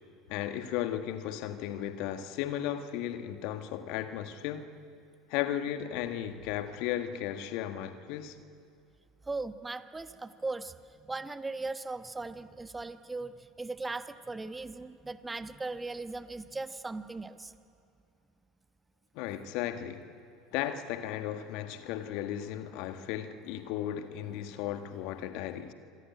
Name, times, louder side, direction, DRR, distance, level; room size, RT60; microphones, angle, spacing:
voice 1, 0.3-4.7 5.3-8.3 19.1-20.1 20.5-25.7, left 11 dB, 55° left, 1.6 m, -35 dB
voice 2, 9.2-17.5, right 3 dB, 15° right, 1.3 m, -38 dB
26.5 x 24.5 x 9.2 m
figure-of-eight pair, 70°, 0 cm